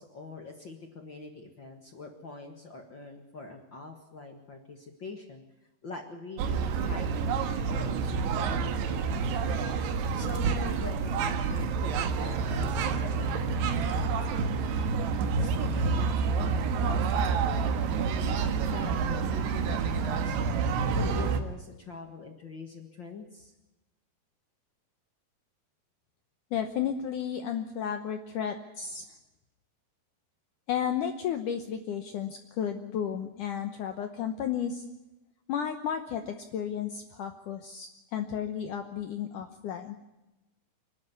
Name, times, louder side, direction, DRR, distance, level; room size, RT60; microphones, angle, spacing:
voice 1, 0.0-5.4 5.8-9.7 10.1-14.7 15.3-20.5 20.9-23.5, left 3 dB, 50° left, 4 dB, 1.3 m, -44 dB
sound 1, 6.4-21.4, right 5 dB, 85° right, 3.5 m, -28 dB
voice 2, 26.5-29.0 30.7-34.9 35.5-40.0, left 8 dB, 70° left, 6 dB, 2.0 m, -33 dB
26.0 x 12.0 x 9.6 m, 1.0 s
omnidirectional pair, 4.7 m